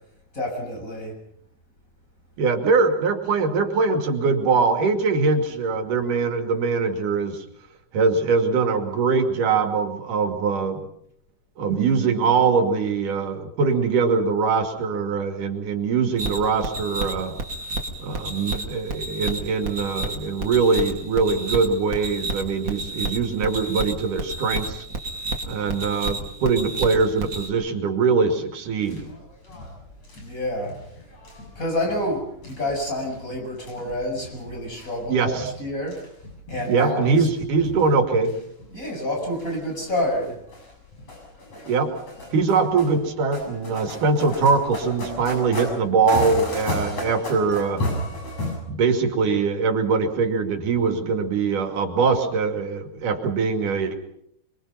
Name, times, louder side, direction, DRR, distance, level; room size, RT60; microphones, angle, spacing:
voice 1, 0.3-1.1 30.2-30.8 31.6-36.0 36.5-37.3 38.7-40.4, left 1 dB, 25° left, 1 dB, 6.9 m, -28 dB
voice 2, 2.4-7.4 7.9-10.9 11.6-17.3 18.0-24.9 25.4-29.1 35.1-35.5 36.7-38.3 41.6-41.9 42.3-47.8 48.7-53.9, right 4 dB, 85° right, 5 dB, 4.0 m, -22 dB
sound 1, 16.2-27.5, right 2 dB, 40° right, 2.8 m, -31 dB
sound 2, 28.7-48.6, left 1 dB, 55° left, 8.4 m, -35 dB
27.5 x 23.5 x 5.7 m, 0.71 s
omnidirectional pair, 3.6 m